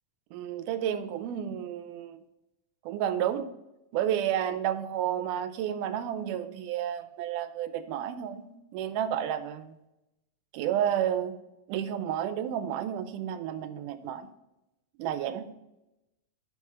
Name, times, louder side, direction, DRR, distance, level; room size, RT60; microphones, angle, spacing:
voice 1, 0.3-2.2 2.9-3.5 3.9-8.5 8.7-9.7 10.5-11.4 11.7-14.3 15.0-15.5, right 10 dB, 85° right, 11 dB, 2.1 m, -31 dB
5.9 x 5.4 x 4.7 m, 0.92 s
omnidirectional pair, 3.6 m